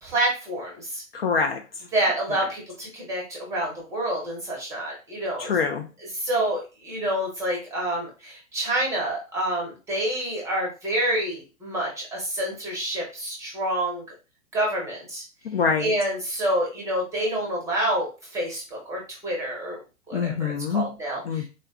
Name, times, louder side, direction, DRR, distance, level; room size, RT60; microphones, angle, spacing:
voice 1, 0.0-1.0 1.9-5.5 6.1-14.0 14.5-15.2 15.8-19.8 20.1-21.5, right 1 dB, 5° right, -2 dB, 0.7 m, -28 dB
voice 2, 1.1-1.6 5.4-5.8 15.4-15.9 20.1-20.9 21.2-21.5, left 5 dB, 45° left, 4 dB, 0.5 m, -24 dB
3.7 x 2.2 x 2.3 m, 0.31 s
figure-of-eight pair, 115°, 42 cm